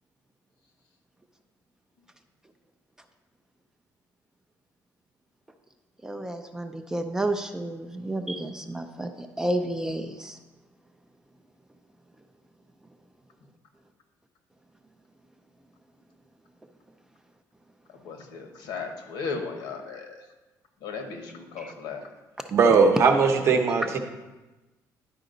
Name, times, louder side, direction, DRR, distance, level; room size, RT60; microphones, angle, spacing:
voice 1, 6.0-10.4 21.6-21.7 23.5-23.6, right 1 dB, 10° right, 6 dB, 0.3 m, -31 dB
voice 2, 17.9-20.3 20.8-22.0, left 4 dB, 85° left, 4 dB, 1.2 m, -36 dB
voice 3, 22.5-24.0, right 5 dB, 40° right, 5 dB, 0.8 m, -19 dB
11.0 x 4.9 x 3.8 m, 1.1 s
cardioid pair, 170°, 7 cm